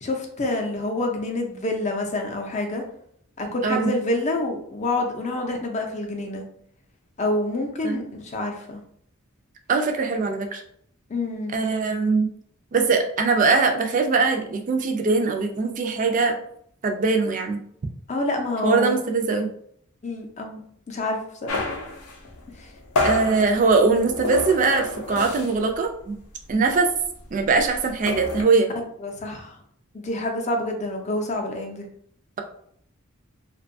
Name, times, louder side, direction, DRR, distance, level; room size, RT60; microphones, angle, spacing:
voice 1, 0.0-2.8 3.4-6.4 7.2-8.8 11.1-11.6 18.1-19.0 20.0-20.6 20.9-21.7 22.6-22.7 29.0-29.5 29.9-31.8, left 2 dB, 35° left, 3 dB, 0.5 m, -27 dB
voice 2, 9.7-10.6 11.5-12.3 12.7-16.4 16.8-17.6 18.6-19.5 23.0-26.2 26.5-26.9 27.3-28.7, right 4 dB, 40° right, 4 dB, 0.3 m, -21 dB
sound 1, 21.5-25.7 26.0-26.2 26.5-28.4, left 3 dB, 85° left, 0.5 m, -29 dB
2.6 x 2.2 x 2.5 m, 0.66 s
head